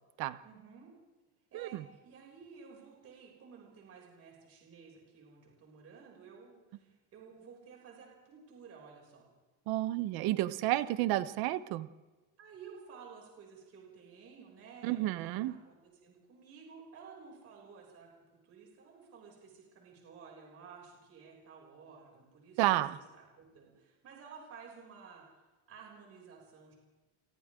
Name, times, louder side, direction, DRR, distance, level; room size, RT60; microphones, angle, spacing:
voice 1, 0.4-0.9 1.5-9.3 12.4-15.1 15.4-15.8 16.0-18.1 18.4-22.6 23.1-25.2 25.7-26.7, right 6 dB, 35° right, -2 dB, 6.7 m, -53 dB
voice 2, 1.5-1.8 9.7-11.9 14.8-15.6 22.6-23.0, right 15 dB, 60° right, 13 dB, 1.1 m, -31 dB
28.5 x 24.5 x 3.8 m, 1.2 s
cardioid pair, 180°, 41 cm